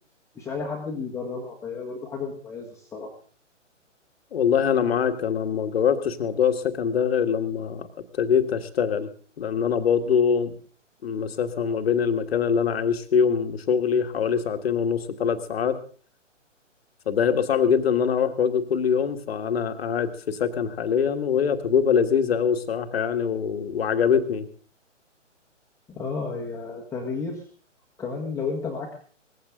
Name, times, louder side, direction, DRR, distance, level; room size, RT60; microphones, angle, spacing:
voice 1, 0.3-3.1 25.9-27.4 28.0-29.0, left 4 dB, 5° left, -2 dB, 1.5 m, -32 dB
voice 2, 4.3-7.9 8.1-9.1 9.4-10.5 11.0-15.8 17.0-24.5, left 7 dB, 50° left, 8 dB, 1.7 m, -23 dB
18.5 x 15.5 x 3.8 m, 0.41 s
figure-of-eight pair, 135°, 38 cm